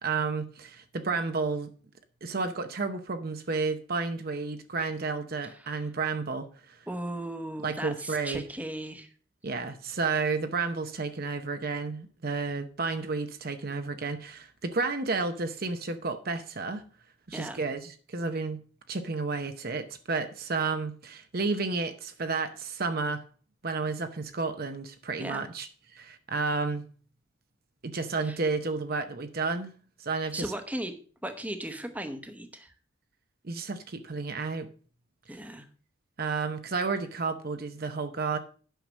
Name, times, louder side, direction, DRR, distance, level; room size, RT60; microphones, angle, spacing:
voice 1, 0.0-1.7 2.2-6.8 7.6-8.4 9.4-16.8 17.3-18.6 18.9-23.2 23.6-26.9 27.8-29.7 30.0-30.5 33.4-34.7 36.2-38.4, right 4 dB, 45° right, 0.8 m, -31 dB
voice 2, 5.4-5.8 6.9-9.1 17.3-17.6 25.2-25.4 28.2-28.4 30.3-30.9 31.2-32.7 35.3-35.7, right 1 dB, 5° right, 1.0 m, -37 dB
9.1 x 5.9 x 6.2 m
head